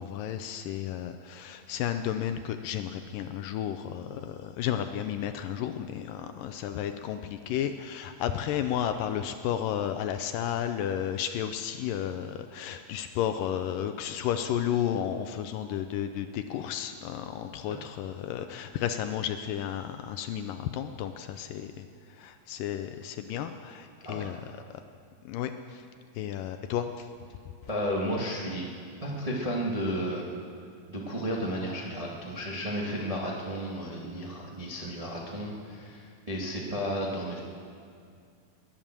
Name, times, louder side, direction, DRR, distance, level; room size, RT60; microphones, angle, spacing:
voice 1, 0.0-24.4 25.3-25.8 26.2-27.1, left 10 dB, 80° left, 8 dB, 2.0 m, -32 dB
voice 2, 27.7-28.6 29.0-30.3 30.9-37.4, equal, 35° right, -3 dB, 0.5 m, -33 dB
21.5 x 9.1 x 7.4 m, 2.3 s
omnidirectional pair, 4.3 m